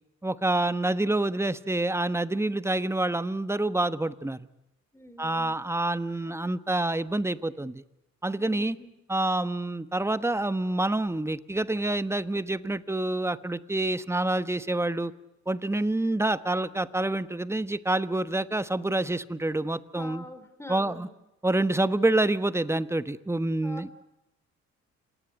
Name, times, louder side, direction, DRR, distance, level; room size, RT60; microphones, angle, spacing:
voice 1, 0.2-4.4 5.2-7.8 8.2-8.8 9.1-15.1 15.5-20.2 20.7-21.1 21.4-23.9, right 2 dB, 10° right, 14 dB, 1.2 m, -27 dB
voice 2, 4.9-5.6 8.4-8.9 19.9-21.1 23.6-24.0, left 1 dB, 10° left, 10 dB, 3.8 m, -45 dB
28.0 x 18.5 x 9.7 m, 0.90 s
cardioid pair, 90°, 30 cm